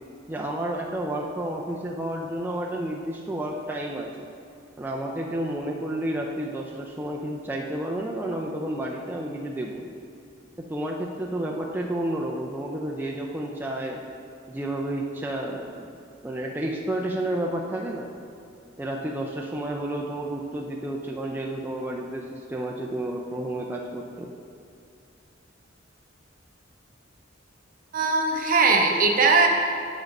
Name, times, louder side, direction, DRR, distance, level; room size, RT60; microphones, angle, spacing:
voice 1, 0.3-4.1 4.8-9.9 10.6-14.0 14.5-15.9 16.2-18.1 18.8-24.3, right 1 dB, 10° right, -2 dB, 0.4 m, -31 dB
voice 2, 27.9-29.5, right 4 dB, 45° right, 2 dB, 0.7 m, -20 dB
6.4 x 5.0 x 5.3 m, 2.5 s
head